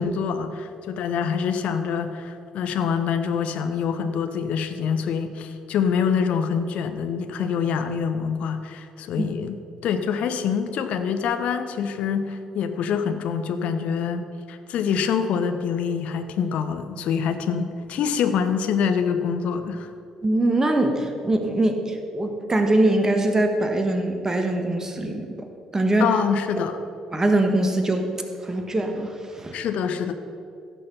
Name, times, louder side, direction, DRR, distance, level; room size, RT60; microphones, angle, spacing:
voice 1, 0.0-19.9 26.0-26.8 29.5-30.1, left 6 dB, 55° left, 8 dB, 0.9 m, -25 dB
voice 2, 20.2-25.3 25.7-26.1 27.1-28.1 28.4-29.6, right 1 dB, 20° right, 5 dB, 1.5 m, -22 dB
16.0 x 6.7 x 5.5 m, 2.6 s
figure-of-eight pair, 50°, 3 cm